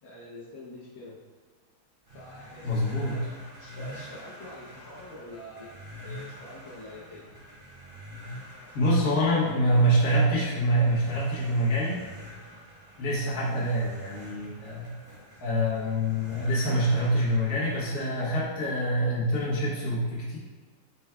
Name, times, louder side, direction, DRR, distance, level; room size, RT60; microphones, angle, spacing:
voice 1, 0.0-1.2 2.1-3.3 3.6-7.2 9.4-9.6 13.4-13.6, left 1 dB, 70° left, -7 dB, 1.6 m, -45 dB
sound 1, 2.0-17.9, equal, 15° right, 0.8 m, -46 dB
voice 2, 2.6-3.2 8.7-12.0 13.0-14.9 15.4-20.4, equal, 50° left, -7 dB, 1.6 m, -25 dB
5.1 x 4.4 x 2.3 m, 1.4 s
omnidirectional pair, 2.3 m